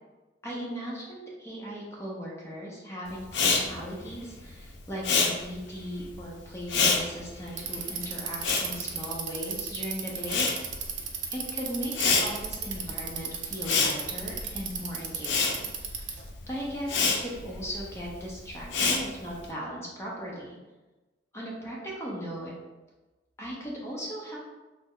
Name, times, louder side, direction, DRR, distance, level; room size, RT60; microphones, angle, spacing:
voice 1, 0.4-10.5 11.3-16.0 16.5-20.6 21.3-22.5 23.4-24.4, equal, 15° left, -4 dB, 0.6 m, -37 dB
Respiratory sounds, 3.3-9.7 10.0-19.5, left 4 dB, 75° left, 0.5 m, -29 dB
Bicycle, 7.5-16.3, right 7 dB, 85° right, 0.5 m, -35 dB
3.1 x 2.1 x 3.6 m, 1.2 s
head